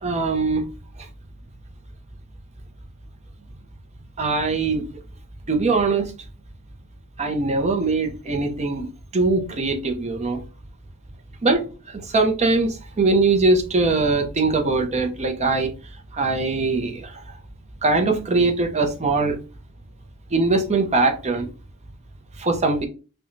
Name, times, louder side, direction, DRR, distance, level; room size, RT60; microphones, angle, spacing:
voice 1, 0.0-0.7 4.2-4.9 5.5-6.1 7.2-8.9 9.1-10.4 11.4-15.7 16.1-17.1 17.8-19.4 20.3-21.5 22.4-22.9, right 3 dB, 30° right, 0.6 m, -21 dB
4.6 x 2.2 x 2.6 m
head